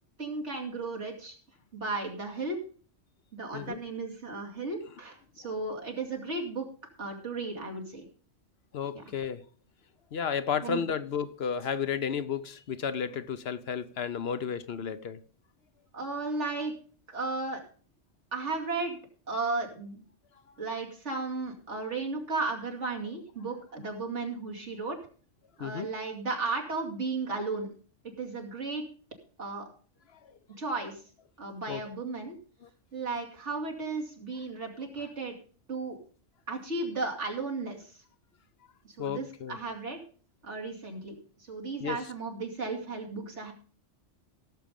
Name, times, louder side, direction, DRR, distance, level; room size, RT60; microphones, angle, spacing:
voice 1, 0.2-1.4 1.7-2.6 3.3-6.7 7.0-8.0 8.9-9.0 10.6-10.9 15.9-16.7 17.1-17.6 18.3-19.0 19.3-20.0 20.6-25.0 25.6-27.7 28.0-28.9 29.4-29.7 30.6-31.0 31.4-32.4 32.9-35.3 35.7-36.0 36.5-38.0 38.8-40.0 40.4-43.5, right 3 dB, 75° right, 2.9 m, -34 dB
voice 2, 8.7-9.4 10.1-15.2 25.6-25.9 30.1-30.4 31.7-31.8 32.6-32.7 39.0-39.6 41.8-42.0, left 7 dB, 60° left, 0.9 m, -33 dB
16.5 x 7.3 x 5.2 m
omnidirectional pair, 1.2 m